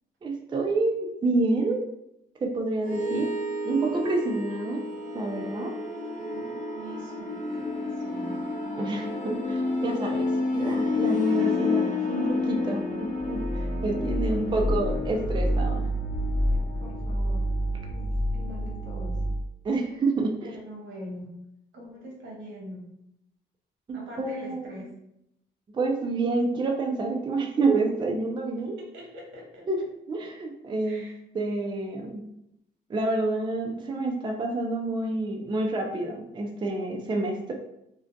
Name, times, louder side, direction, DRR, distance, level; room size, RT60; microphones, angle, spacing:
voice 1, 0.2-1.8 2.4-3.3 3.6-4.8 5.1-5.7 8.8-10.3 10.5-12.8 13.3-15.8 19.6-20.5 23.9-24.6 25.7-28.8 29.7-29.8 30.1-31.0 31.3-32.2 32.9-37.5, right 2 dB, 25° right, 1 dB, 0.4 m, -28 dB
sound 1, 2.8-19.4, left 2 dB, 40° left, 0.6 m, -29 dB
voice 2, 6.3-8.4 11.9-12.1 12.9-13.0 16.5-17.5 17.9-19.2 19.8-19.9 20.4-21.3 21.7-22.9 23.9-24.9 28.6-29.7 30.8-31.2, equal, 80° right, -2 dB, 0.9 m, -43 dB
2.4 x 2.2 x 2.5 m, 0.81 s
cardioid pair, 90°, 20 cm